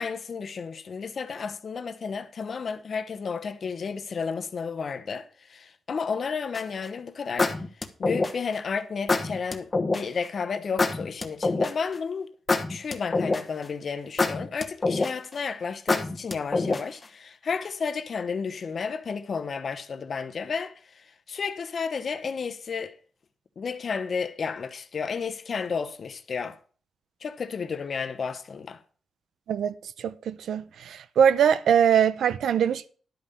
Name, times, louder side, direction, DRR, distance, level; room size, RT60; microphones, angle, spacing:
voice 1, 0.0-7.6 8.0-12.3 12.7-22.9 23.6-26.6 27.2-28.8, left 5 dB, 50° left, 1.0 m, -32 dB
sound 1, 6.5-6.8 7.4-8.5 9.1-10.0 10.8-11.9 12.5-13.6 14.2-15.3 15.9-17.0, left 3 dB, 25° left, 1.1 m, -25 dB
voice 2, 29.5-32.9, right 8 dB, 85° right, 0.6 m, -22 dB
11.5 x 5.6 x 6.9 m
cardioid pair, 110°, 0 cm